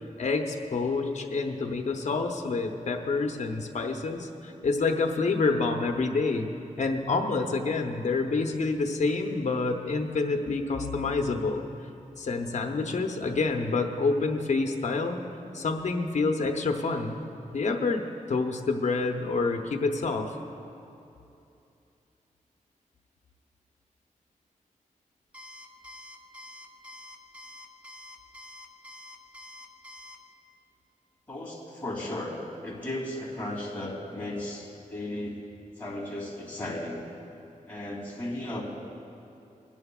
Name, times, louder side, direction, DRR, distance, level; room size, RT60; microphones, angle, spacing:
voice 1, 0.2-6.5 6.8-11.6 12.2-15.2 15.5-17.2 17.5-18.0 18.3-20.3, left 3 dB, 60° left, 3 dB, 0.9 m, -27 dB
voice 2, 12.7-13.0 31.3-35.4 35.8-37.0 37.7-38.6, left 1 dB, 15° left, -6 dB, 3.0 m, -35 dB
Alarm, 25.3-30.2, left 1 dB, 10° right, 0.9 m, -46 dB
20.5 x 10.5 x 2.4 m, 2.7 s
wide cardioid pair, 135°, 14 cm